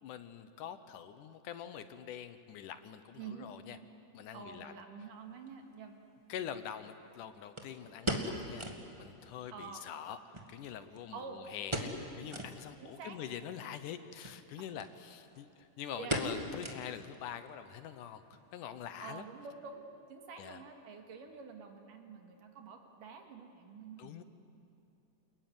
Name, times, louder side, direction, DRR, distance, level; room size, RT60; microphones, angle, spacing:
voice 1, 0.0-3.8 4.1-4.7 6.3-8.7 9.0-18.2 18.5-19.3 20.4-20.6 24.0-24.2, left 9 dB, 75° left, 11 dB, 2.4 m, -45 dB
voice 2, 3.2-3.5 4.3-6.0 9.5-9.8 11.1-11.4 12.8-13.2 15.9-16.2 19.0-19.8 20.1-24.2, right 5 dB, 70° right, 4 dB, 3.6 m, -48 dB
sound 1, 5.5-5.6 7.6-8.9 9.2-9.3 9.6-9.7 10.3-11.2 11.7-12.0 12.3-12.6 13.1-13.2 14.1-14.4 14.8-14.9 15.2-15.5 16.1-17.2 17.5-17.6 18.1-18.5 18.8-18.9, right 1 dB, 15° right, 1.2 m, -37 dB
28.5 x 21.0 x 9.6 m, 2.6 s
omnidirectional pair, 3.9 m